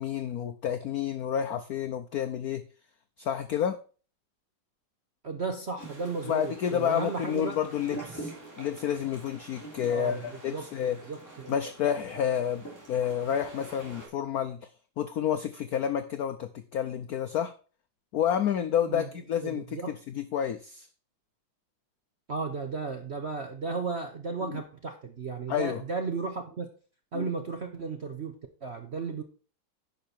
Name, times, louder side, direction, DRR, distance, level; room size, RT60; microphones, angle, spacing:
voice 1, 0.0-2.6 3.2-3.8 6.2-11.0 11.5-14.7 15.0-17.5 18.1-20.9 24.5-24.6 25.5-25.8 27.1-27.3, left 9 dB, 75° left, 9 dB, 0.8 m, -30 dB
voice 2, 5.2-7.6 9.9-10.2 10.5-10.7 11.1-11.5 18.9-19.1 19.4-20.0 22.3-26.7 27.1-29.2, right 4 dB, 50° right, 5 dB, 0.8 m, -34 dB
sound 1, 5.8-14.1, right 2 dB, 10° left, 2.8 m, -45 dB
10.5 x 5.6 x 4.4 m, 0.38 s
omnidirectional pair, 2.3 m